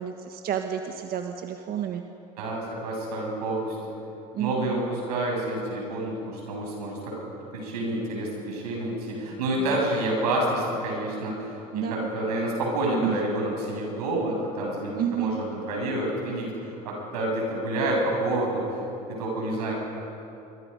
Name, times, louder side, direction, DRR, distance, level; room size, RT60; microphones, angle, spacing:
voice 1, 0.0-2.0 4.3-4.8 9.7-9.8 11.7-12.1 13.0-13.2 15.0-15.4, right 9 dB, 50° right, 5 dB, 1.5 m, -30 dB
voice 2, 2.4-3.8 4.4-7.1 7.5-18.8 19.1-19.7, right 1 dB, 90° right, -1 dB, 7.1 m, -28 dB
27.0 x 23.5 x 5.4 m, 2.9 s
supercardioid pair, 85°, 20 cm